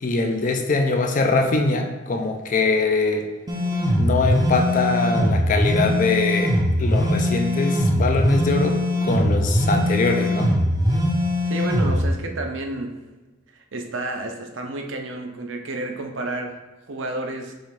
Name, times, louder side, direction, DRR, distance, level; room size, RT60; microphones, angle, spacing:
voice 1, 0.0-3.3 4.0-10.6, left 3 dB, 40° left, 4 dB, 0.4 m, -22 dB
sound 1, 3.5-12.0, left 1 dB, 20° right, 0.5 m, -21 dB
voice 2, 11.4-12.9 13.5-16.6 16.9-17.5, right 2 dB, 70° right, 4 dB, 0.6 m, -30 dB
6.2 x 2.5 x 3.2 m, 1.2 s
head